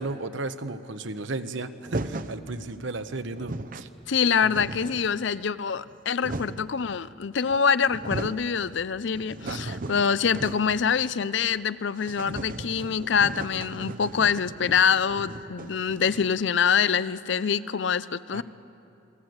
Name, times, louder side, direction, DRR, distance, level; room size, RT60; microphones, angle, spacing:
voice 1, 0.0-3.9 4.4-4.5 9.5-10.0 13.8-14.1 18.3-18.4, right 2 dB, 65° right, 10 dB, 1.0 m, -34 dB
sound 1, 1.9-2.4 3.0-3.1 3.3-3.9 4.2-5.1 5.8-6.7 7.5-7.6 7.9-8.5 8.9-10.8 11.1-11.2 11.5-11.6 12.0-16.5, right 2 dB, 45° right, 0.7 m, -37 dB
voice 2, 4.1-18.4, left 6 dB, 60° left, 16 dB, 0.5 m, -25 dB
28.5 x 18.0 x 8.0 m, 2.8 s
head